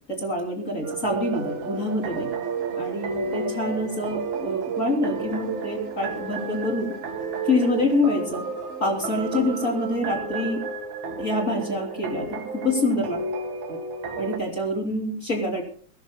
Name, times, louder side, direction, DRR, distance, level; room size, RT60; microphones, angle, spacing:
voice 1, 0.1-2.3 2.8-6.9 7.4-8.5 8.8-10.6 11.2-13.2 13.7-13.8 14.2-15.6, left 2 dB, 25° left, 1 dB, 3.0 m, -26 dB
sound 1, 0.8-14.4, right 4 dB, 75° right, 3.0 m, -32 dB
sound 2, 1.2-9.9, right 1 dB, 45° right, 8.6 m, -45 dB
22.5 x 17.0 x 2.2 m, 0.43 s
omnidirectional pair, 3.4 m